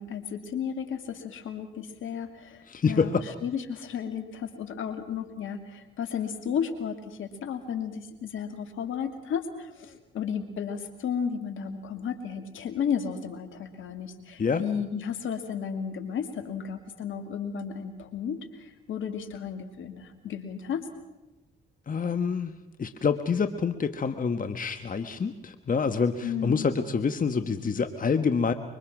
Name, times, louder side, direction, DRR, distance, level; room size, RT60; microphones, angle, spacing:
voice 1, 0.0-3.1 3.4-20.8 26.2-26.7, left 7 dB, 75° left, 7 dB, 2.7 m, -33 dB
voice 2, 2.7-3.2 14.4-14.6 21.9-22.5 22.8-28.5, left 5 dB, 40° left, 9 dB, 1.4 m, -27 dB
25.5 x 24.0 x 6.1 m, 1.0 s
supercardioid pair, 50°, 21 cm